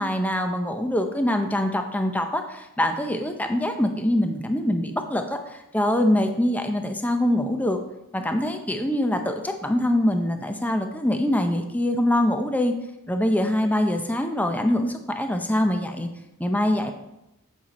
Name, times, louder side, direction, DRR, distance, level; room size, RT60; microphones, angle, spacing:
voice 1, 0.0-7.8 8.1-12.7 13.1-16.1 16.4-16.9, left 1 dB, 5° left, 6 dB, 0.6 m, -24 dB
7.7 x 7.4 x 4.1 m, 0.87 s
head